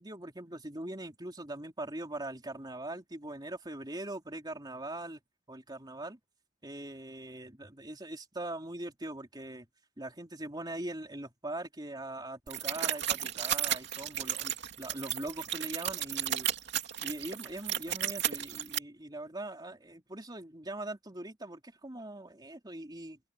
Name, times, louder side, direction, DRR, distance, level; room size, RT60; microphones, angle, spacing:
voice 1, 0.0-5.2 5.5-6.2 6.6-9.7 10.0-16.5 17.0-23.2, right 1 dB, 20° right, 3.3 m, -41 dB
sound 1, 12.5-18.8, right 10 dB, 60° right, 2.8 m, -33 dB
head